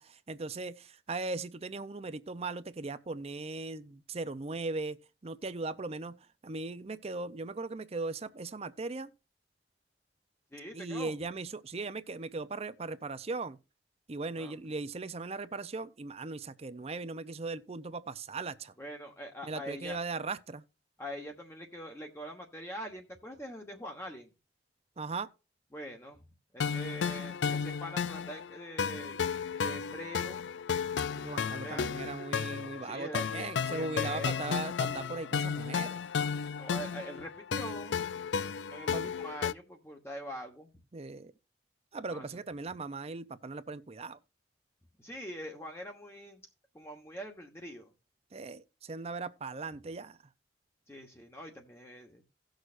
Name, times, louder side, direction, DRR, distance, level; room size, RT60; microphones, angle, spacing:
voice 1, 0.0-5.0 5.2-9.1 10.7-13.6 14.1-18.7 19.4-20.6 25.0-25.3 31.2-36.0 38.9-39.1 40.9-41.3 41.9-44.2 48.3-50.2, right 3 dB, 35° right, 0.6 m, -38 dB
voice 2, 10.5-11.1 14.4-14.5 18.8-20.0 21.0-24.3 25.7-26.2 26.5-29.2 29.6-30.5 31.6-31.9 32.8-34.4 36.5-38.0 38.7-40.7 42.1-42.3 45.0-46.4 46.7-47.9 50.9-52.2, equal, 15° left, 1.2 m, -43 dB
sound 1, 26.6-39.5, left 6 dB, 85° left, 0.4 m, -33 dB
17.5 x 6.4 x 2.5 m
head